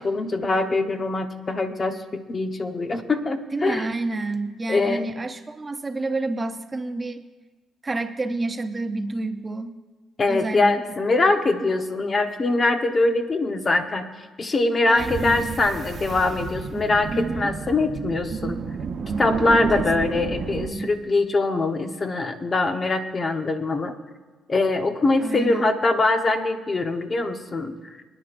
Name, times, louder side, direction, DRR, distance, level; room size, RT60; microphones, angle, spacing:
voice 1, 0.0-3.9 4.7-5.0 10.2-14.1 14.4-18.6 19.2-23.9 24.5-27.7, left 2 dB, 35° left, 6 dB, 1.1 m, -23 dB
voice 2, 3.5-7.2 7.8-9.7 10.3-10.8 14.9-15.5 17.1-17.5 19.7-19.9 20.7-20.9 25.2-25.7, right 2 dB, 25° right, 8 dB, 0.7 m, -29 dB
sound 1, 15.0-20.7, right 5 dB, 50° right, 1.0 m, -30 dB
25.0 x 9.8 x 2.6 m, 1.3 s
cardioid pair, 90°, 0 cm